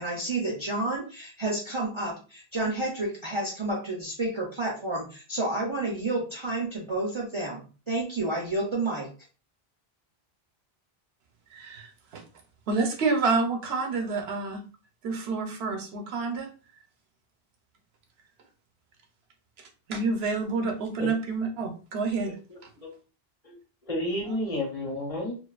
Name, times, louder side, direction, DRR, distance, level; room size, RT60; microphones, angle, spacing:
voice 1, 0.0-9.1, right 2 dB, 40° right, -3 dB, 0.4 m, -30 dB
voice 2, 11.5-12.2 12.7-14.6 15.0-16.5 19.9-22.3, right 4 dB, 80° right, 4 dB, 0.9 m, -28 dB
voice 3, 22.5-22.9 23.4-23.6 23.9-25.4, left 1 dB, 35° left, -1 dB, 1.0 m, -31 dB
2.4 x 2.3 x 2.3 m, 0.36 s
omnidirectional pair, 1.0 m